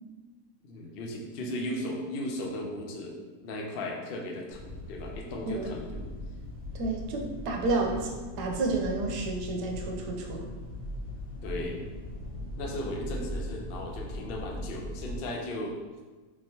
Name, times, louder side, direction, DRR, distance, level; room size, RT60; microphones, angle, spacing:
voice 1, 0.6-6.0 7.9-8.0 11.4-11.8 12.6-15.7, left 1 dB, 85° left, 0 dB, 0.5 m, -36 dB
sound 1, 4.5-15.2, left 1 dB, 35° left, 1.2 m, -39 dB
voice 2, 6.8-10.5, right 3 dB, 85° right, 1 dB, 1.2 m, -30 dB
3.7 x 3.0 x 2.7 m, 1.3 s
omnidirectional pair, 1.7 m